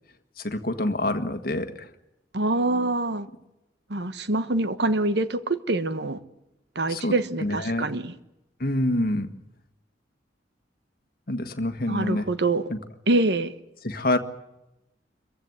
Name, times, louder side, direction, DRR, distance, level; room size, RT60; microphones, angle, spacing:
voice 1, 0.4-1.9 6.9-7.1 7.4-7.9 8.6-9.3 11.3-12.3 12.7-12.8 13.8-14.2, left 1 dB, 55° left, 8 dB, 1.6 m, -26 dB
voice 2, 2.3-3.3 3.9-6.2 6.7-8.1 11.9-12.6 13.1-13.5, right 2 dB, 65° right, 12 dB, 1.3 m, -25 dB
25.5 x 15.5 x 9.6 m, 0.91 s
head